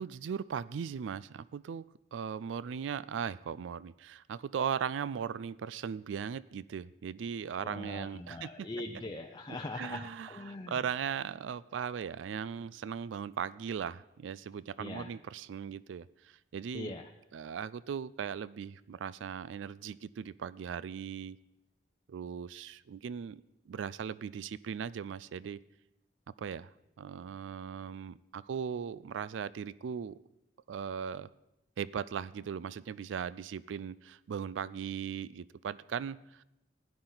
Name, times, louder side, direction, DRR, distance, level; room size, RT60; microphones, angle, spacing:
voice 1, 0.0-1.8 2.1-8.7 9.8-16.9 17.3-21.4 22.1-25.6 26.4-26.7 27.0-30.2 30.7-31.3 31.8-36.4, right 7 dB, 85° right, 19 dB, 0.3 m, -38 dB
voice 2, 7.6-10.8 14.8-15.1 16.7-17.1, left 2 dB, 25° left, 2 dB, 0.6 m, -41 dB
15.5 x 10.5 x 3.9 m, 0.89 s
head